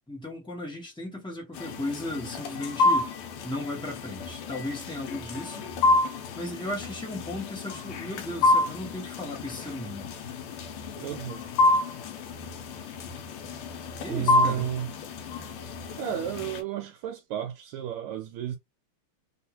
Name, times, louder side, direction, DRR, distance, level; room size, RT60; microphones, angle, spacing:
voice 1, 0.1-3.1 3.4-5.7 6.4-10.1 14.0-14.7, left 1 dB, 5° left, 0.3 m, -36 dB
sound 1, 1.5-16.6, left 2 dB, 85° left, 1.5 m, -29 dB
voice 2, 11.0-11.4 14.1-14.9 16.0-18.6, right 10 dB, 80° right, 1.5 m, -32 dB
3.6 x 2.4 x 2.8 m
omnidirectional pair, 2.4 m